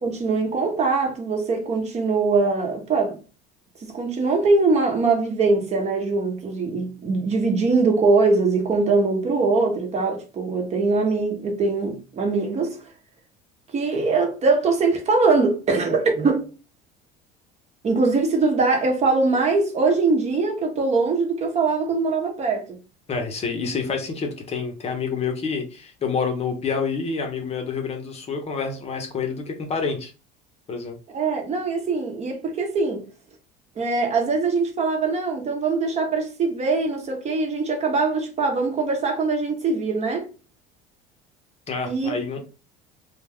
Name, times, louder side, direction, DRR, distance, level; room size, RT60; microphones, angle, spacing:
voice 1, 0.0-3.2 3.8-12.8 13.7-16.5 17.8-22.8 31.1-33.0 33.8-40.3 41.8-42.4, right 3 dB, 35° right, 0.8 m, -22 dB
voice 2, 23.1-30.1 30.7-31.0 41.7-42.4, left 5 dB, 30° left, 0.7 m, -28 dB
2.2 x 2.2 x 3.4 m
supercardioid pair, 110°, 20 cm